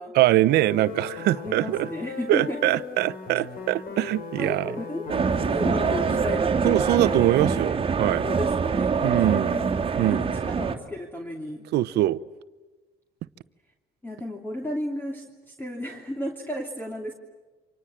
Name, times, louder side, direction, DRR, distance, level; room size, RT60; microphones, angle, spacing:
voice 1, 0.1-1.9 2.3-4.7 6.6-8.2 9.0-9.6 10.0-10.3 11.7-12.2, right 15 dB, 75° right, 0.9 m, -23 dB
sound 1, 0.5-6.2, left 4 dB, 60° left, 5.0 m, -38 dB
voice 2, 1.4-2.6 4.4-5.2 5.5-7.2 7.7-7.8 8.2-9.7 10.0-11.7 14.0-17.1, left 1 dB, 10° left, 3.0 m, -33 dB
sound 2, 5.1-10.8, right 5 dB, 30° right, 2.3 m, -25 dB
29.5 x 26.0 x 7.5 m
cardioid pair, 110°, 17 cm